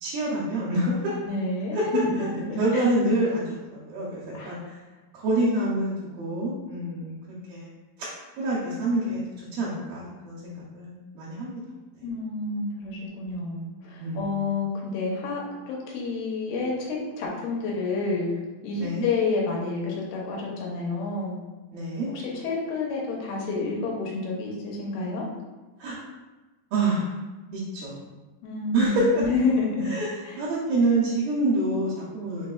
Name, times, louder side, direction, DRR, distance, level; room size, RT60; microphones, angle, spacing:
voice 1, 0.0-1.2 1.7-1.9 2.6-4.6 5.2-7.2 7.5-7.7 8.4-11.6 14.0-14.3 18.7-19.1 21.7-22.1 25.8-26.0 26.7-27.1 27.5-27.9 28.7-29.2 29.9-30.1 30.4-32.5, right 2 dB, 75° right, -7 dB, 2.4 m, -26 dB
voice 2, 1.3-2.0 2.3-2.9 4.3-4.6 12.0-18.3 18.6-21.4 22.2-25.3 28.4-29.9 30.2-30.4, left 3 dB, 80° left, -3 dB, 2.7 m, -29 dB
5.9 x 3.2 x 2.3 m, 1.2 s
omnidirectional pair, 4.6 m